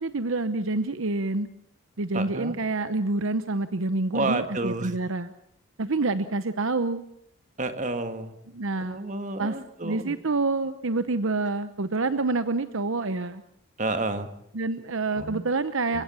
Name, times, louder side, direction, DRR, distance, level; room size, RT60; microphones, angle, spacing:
voice 1, 0.0-1.5 2.0-5.3 5.8-7.0 8.5-9.0 9.4-13.4 14.5-16.0, right 3 dB, 60° right, 12 dB, 0.9 m, -27 dB
voice 2, 2.1-2.6 4.1-4.9 7.6-8.3 8.8-10.2 13.8-14.3 15.1-15.5 15.9-16.0, right 2 dB, 35° right, 8 dB, 1.8 m, -30 dB
29.5 x 16.5 x 7.0 m, 0.72 s
head